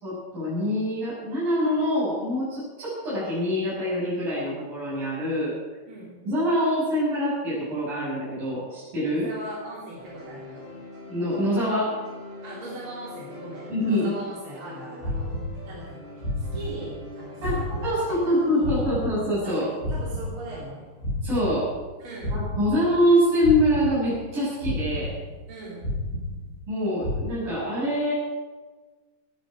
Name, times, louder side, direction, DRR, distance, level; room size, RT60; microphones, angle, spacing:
voice 1, 0.0-5.5 6.3-9.3 11.1-12.0 13.7-14.1 17.4-19.7 21.2-21.7 22.3-25.1 26.7-28.1, equal, 75° right, -10 dB, 8.5 m, -25 dB
voice 2, 9.1-10.7 12.4-15.3 15.6-18.9 19.4-20.9 22.0-22.4 25.5-25.9, right 2 dB, 40° right, -6 dB, 4.2 m, -39 dB
sound 1, 10.0-22.1, left 2 dB, 55° right, 7.2 m, -45 dB
sound 2, 15.0-15.9 16.2-17.1 17.4-19.5 19.8-21.9 22.2-23.1 23.4-24.3 24.6-25.5 25.8-26.7 27.0-27.2, left 1 dB, 25° left, 2.3 m, -31 dB
18.5 x 15.0 x 4.9 m, 1.3 s
omnidirectional pair, 3.9 m